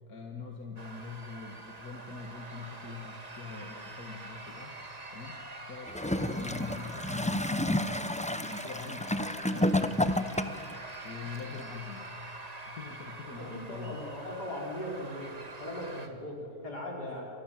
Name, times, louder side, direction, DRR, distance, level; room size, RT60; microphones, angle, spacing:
voice 1, 0.1-5.4 5.6-8.0 8.2-10.6 11.0-12.1 12.7-14.0 17.0-17.1, left 5 dB, 65° left, 2 dB, 2.4 m, -44 dB
sound 1, 0.8-16.1, right 2 dB, 25° right, 2.0 m, -45 dB
Gurgling / Toilet flush, 5.9-10.8 11.6-11.7, left 1 dB, 10° left, 0.4 m, -30 dB
voice 2, 13.4-17.3, left 1 dB, 80° left, -1 dB, 5.7 m, -39 dB
29.0 x 26.5 x 7.7 m, 2.8 s
omnidirectional pair, 1.7 m